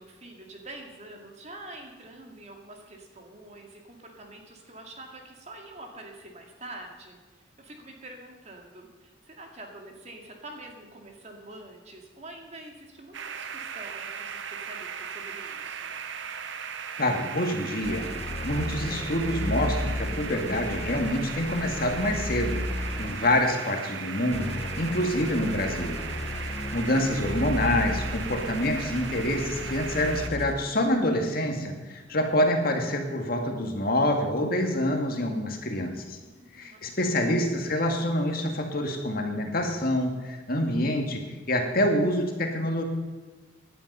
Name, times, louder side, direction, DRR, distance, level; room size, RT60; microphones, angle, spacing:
voice 1, 0.0-16.0 36.2-37.2, right 2 dB, 35° right, 2 dB, 2.2 m, -46 dB
sound 1, 13.1-30.3, right 7 dB, 70° right, 0.8 m, -38 dB
voice 2, 17.0-18.1 18.4-26.0 26.4-36.2 36.5-42.8, left 1 dB, 45° left, 3 dB, 2.0 m, -27 dB
sound 2, 17.8-23.4 24.3-30.7, left 1 dB, 30° left, 0.8 m, -34 dB
16.5 x 11.0 x 5.5 m, 1.3 s
head